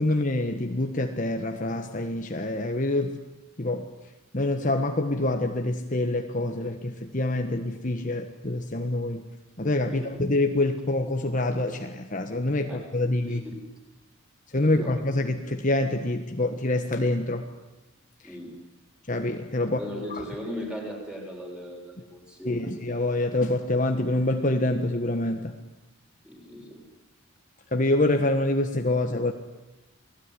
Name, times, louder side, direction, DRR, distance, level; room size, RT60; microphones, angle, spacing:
voice 1, 0.0-3.2 3.6-3.9 4.3-9.3 9.6-13.4 14.5-17.5 19.1-19.8 20.1-20.2 22.4-25.5 27.7-29.3, left 2 dB, 35° left, 5 dB, 1.4 m, -26 dB
voice 2, 14.7-15.0 18.2-18.5 19.8-22.7 26.2-26.8, equal, 5° right, 0 dB, 6.5 m, -38 dB
29.0 x 19.0 x 9.9 m, 1.0 s
head